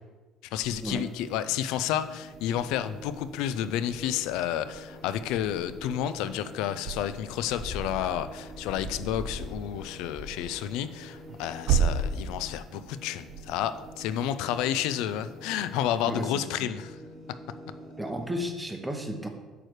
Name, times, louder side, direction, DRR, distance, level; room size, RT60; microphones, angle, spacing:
voice 1, 0.5-17.0, left 10 dB, 80° left, 13 dB, 0.4 m, -30 dB
sound 1, 0.6-16.4, right 6 dB, 65° right, 0.5 m, -37 dB
sound 2, 1.2-18.5, equal, 20° right, 1.1 m, -47 dB
sound 3, 4.9-12.1, left 1 dB, 15° left, 1.8 m, -43 dB
voice 2, 16.1-16.7 18.0-19.3, equal, 5° right, 4 dB, 0.7 m, -33 dB
8.6 x 3.2 x 6.4 m, 1.3 s
cardioid pair, 165°, 0 cm